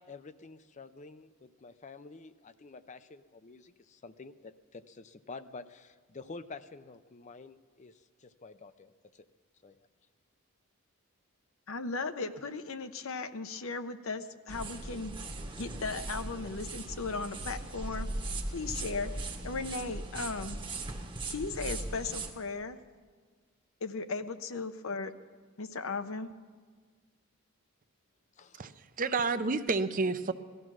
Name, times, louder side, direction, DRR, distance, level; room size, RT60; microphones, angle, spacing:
voice 1, 0.0-9.3 9.6-9.8 28.4-28.6, left 3 dB, 30° left, 12 dB, 0.5 m, -49 dB
voice 2, 11.7-15.1 15.6-18.1 18.5-19.1 19.4-20.6 21.3-22.8 23.8-25.1 25.6-26.3, left 4 dB, 65° left, 10 dB, 0.7 m, -36 dB
sound 1, 14.5-22.3, right 2 dB, 20° right, 1.0 m, -39 dB
voice 3, 28.5-30.3, right 4 dB, 35° right, 11 dB, 0.6 m, -30 dB
17.5 x 13.5 x 6.2 m, 1.5 s
head